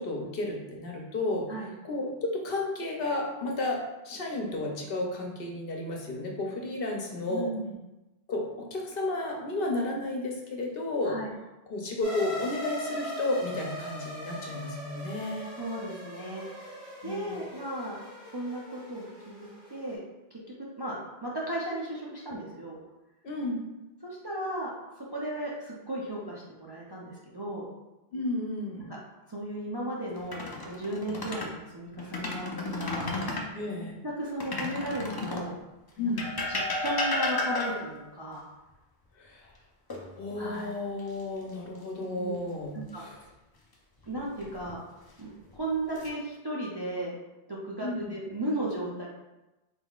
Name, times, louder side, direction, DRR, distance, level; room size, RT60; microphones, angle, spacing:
voice 1, 0.0-1.5 1.8-3.8 4.0-7.5 8.3-11.2 11.7-15.5 17.0-17.4 23.2-23.6 28.1-28.9 33.5-34.0 36.0-36.3 39.1-39.5 40.1-43.2 47.8-48.1, left 2 dB, 65° left, 0 dB, 0.9 m, -32 dB
voice 2, 7.3-7.7 11.0-11.3 15.5-16.8 17.0-18.0 18.3-20.0 20.3-20.4 20.8-22.8 24.0-24.7 25.0-27.7 29.3-33.1 33.7-33.8 34.2-35.6 36.0-36.1 36.5-38.4 40.4-40.7 42.2-42.4 42.7-43.0 44.0-44.9 45.2-47.2 47.5-49.1, right 1 dB, 30° right, -5 dB, 0.4 m, -35 dB
sound 1, 12.0-19.9, equal, 15° right, 1.3 m, -40 dB
sound 2, 30.2-31.5 32.0-33.5 34.4-35.5 36.2-38.0 39.9-40.6 41.0-41.2 44.1-44.7 45.4-46.1, left 2 dB, 35° left, 0.4 m, -33 dB
4.3 x 3.6 x 2.3 m, 1.0 s
omnidirectional pair, 1.1 m